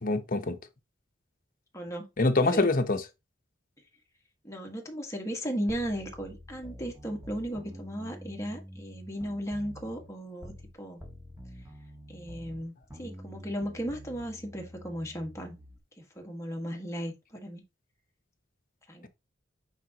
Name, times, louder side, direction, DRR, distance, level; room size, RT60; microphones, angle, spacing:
voice 1, 0.0-0.6 2.2-3.0, left 2 dB, 45° left, 1.0 m, -25 dB
voice 2, 1.7-2.1 2.5-2.7 4.4-10.5 10.8-11.0 12.1-15.6 16.2-17.6 18.9-19.1, equal, 15° left, 1.7 m, -36 dB
sound 1, 5.7-10.7 11.0-15.8, equal, 10° right, 1.7 m, -47 dB
9.0 x 4.9 x 2.9 m
head